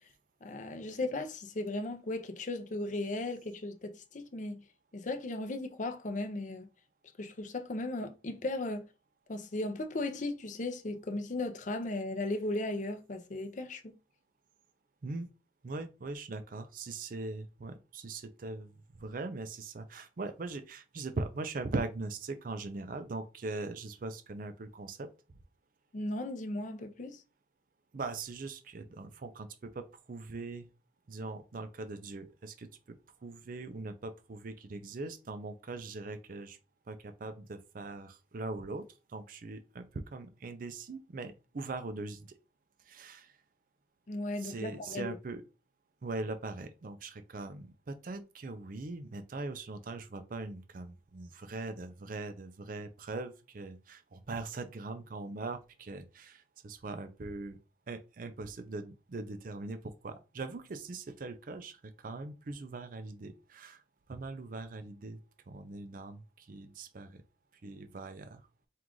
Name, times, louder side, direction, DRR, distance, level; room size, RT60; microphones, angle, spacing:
voice 1, 0.4-4.6 4.9-6.7 7.2-8.9 9.3-13.9 25.9-27.2 44.1-45.2, left 2 dB, 45° left, 0.6 m, -36 dB
voice 2, 15.6-18.7 19.0-25.1 27.9-30.7 31.1-36.6 36.9-42.4 42.9-43.3 44.4-45.4 46.0-57.6 57.9-63.8 64.1-65.2 65.5-67.2 67.6-68.5, right 3 dB, 50° right, 0.5 m, -41 dB
4.6 x 2.4 x 3.7 m
head